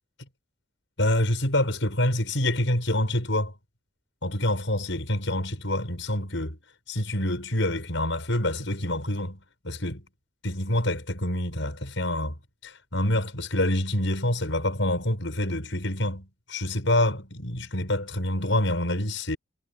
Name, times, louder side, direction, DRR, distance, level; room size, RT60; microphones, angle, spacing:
voice 1, 1.0-3.5 4.2-6.6 6.9-9.4 9.6-10.0 10.4-12.4 12.6-19.4, left 1 dB, 70° left, 7.3 m, -26 dB
head